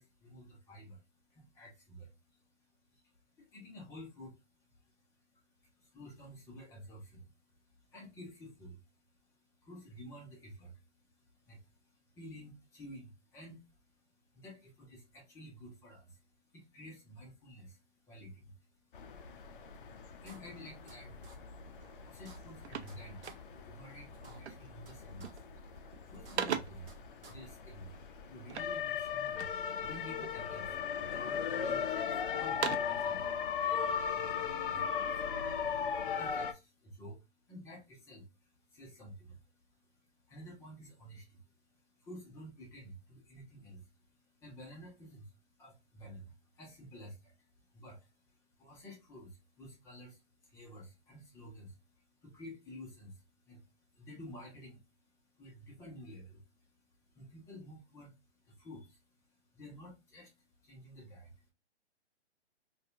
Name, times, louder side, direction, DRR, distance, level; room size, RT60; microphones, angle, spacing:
voice 1, 0.0-61.5, equal, 10° left, 0.6 m, -53 dB
sound 1, 18.9-36.5, left 7 dB, 50° left, 0.5 m, -38 dB
sound 2, 19.7-19.8 20.2-21.0 21.2-21.4 21.7-21.8 22.1-22.9 23.2-23.3 23.7-23.8 24.1-24.9 25.2-25.3 25.7-25.8 26.1-26.9 27.2-27.3, right 3 dB, 55° right, 0.9 m, -55 dB
sound 3, 21.8-22.0 22.2-23.8 24.4-24.8 25.1-25.6 25.9-27.0 28.5-29.7 30.2-30.8 31.3-32.0 32.4-33.1, right 8 dB, 75° right, 0.5 m, -41 dB
2.7 x 2.2 x 2.4 m
hypercardioid pair, 135°, 33 cm